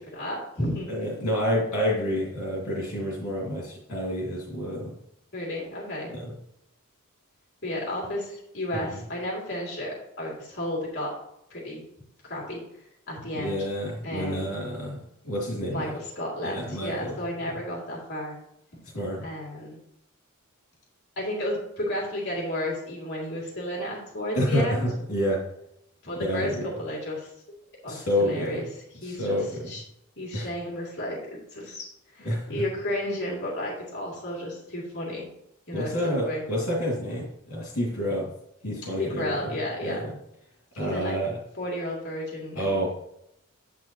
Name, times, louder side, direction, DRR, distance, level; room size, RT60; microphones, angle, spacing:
voice 1, 0.0-0.9 5.3-6.1 7.6-11.1 11.5-11.8 12.2-12.6 13.1-13.7 14.0-14.5 15.7-18.4 19.2-19.8 21.2-24.9 26.0-27.3 27.8-28.6 28.9-29.8 30.2-31.9 32.1-35.3 35.7-36.4 39.0-40.0 40.7-41.2 41.6-42.9, left 1 dB, 55° left, -4 dB, 2.7 m, -32 dB
voice 2, 0.9-4.9 6.1-6.3 8.7-8.9 13.3-15.0 15.2-15.9 16.4-17.1 18.9-19.3 24.3-25.4 26.2-26.7 27.9-28.6 29.0-29.7 30.3-30.5 32.2-32.6 35.7-38.3 38.6-39.5 39.8-40.1 40.8-41.4 42.5-42.9, equal, 75° left, -4 dB, 2.5 m, -28 dB
10.0 x 7.7 x 3.0 m, 0.80 s
head